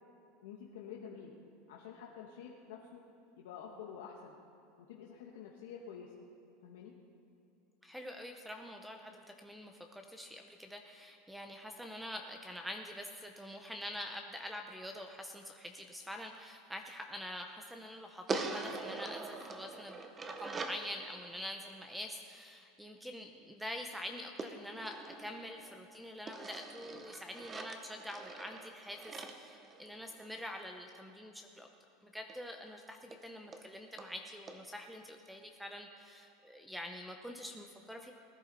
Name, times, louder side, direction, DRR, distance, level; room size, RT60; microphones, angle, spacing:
voice 1, 0.4-1.3 1.7-3.0 3.4-4.4 4.8-6.1 6.6-6.9, left 7 dB, 90° left, -2 dB, 1.3 m, -49 dB
voice 2, 7.8-20.0 20.3-31.7 32.0-38.1, left 1 dB, ahead, 4 dB, 0.7 m, -46 dB
sound 1, 18.3-20.9 24.4-25.8 26.3-30.4 32.3-32.4 32.7-32.8 33.1-33.2 33.5-33.6 34.0-34.1 34.5-34.6, right 3 dB, 20° right, 1.0 m, -43 dB
19.5 x 10.5 x 4.1 m, 2.8 s
supercardioid pair, 135°, 0 cm